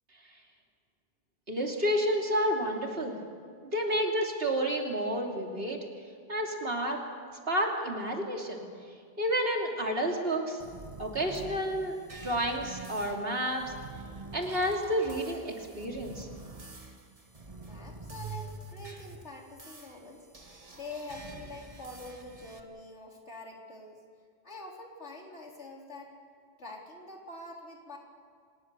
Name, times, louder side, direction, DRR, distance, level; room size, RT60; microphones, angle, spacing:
voice 1, 1.5-3.2 3.7-5.8 6.3-7.0 7.5-8.6 9.2-10.6 11.0-12.0 12.2-13.7 14.3-16.3, equal, 60° right, 1 dB, 3.3 m, -30 dB
sound 1, 10.6-22.6, right 3 dB, 30° right, 1.7 m, -46 dB
voice 2, 17.5-20.3 20.7-24.0 24.4-26.1 26.6-28.0, left 2 dB, 85° left, -1 dB, 4.2 m, -45 dB
25.5 x 20.5 x 6.9 m, 2.1 s
omnidirectional pair, 1.1 m